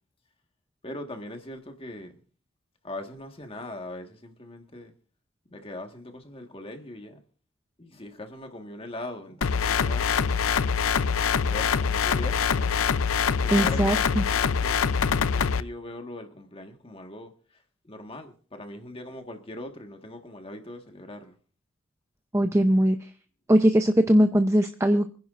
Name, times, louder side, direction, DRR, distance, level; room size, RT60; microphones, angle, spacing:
voice 1, 0.8-2.2 2.8-4.9 5.5-7.2 7.8-10.4 11.1-12.7 13.4-21.4, left 1 dB, 25° left, 1.5 m, -41 dB
sound 1, 9.4-15.6, left 6 dB, 75° left, 0.5 m, -24 dB
voice 2, 13.5-14.2 22.3-23.1 23.5-25.1, equal, 15° right, 0.6 m, -20 dB
25.5 x 10.5 x 2.5 m
head